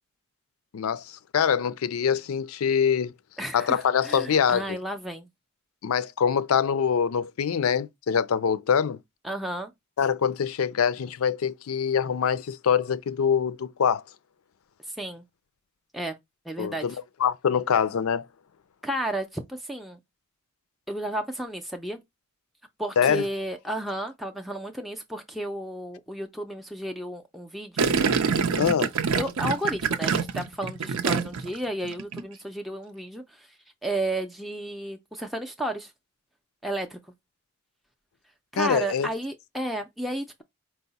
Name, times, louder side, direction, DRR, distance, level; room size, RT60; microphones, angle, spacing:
voice 1, 0.7-3.1 3.5-4.8 5.8-9.0 10.0-14.0 16.6-18.2 23.0-23.2 28.6-28.9 38.6-39.1, left 7 dB, 85° left, 0.4 m, -24 dB
voice 2, 3.4-5.3 9.2-9.7 14.9-15.2 15.9-16.2 16.5-17.0 18.8-20.0 20.9-22.0 22.8-27.9 29.1-35.9 36.6-37.0 38.5-40.4, right 1 dB, ahead, 0.4 m, -33 dB
Gurgling, 27.8-31.6 31.8-32.2, right 5 dB, 85° right, 0.6 m, -25 dB
4.6 x 2.1 x 3.9 m
head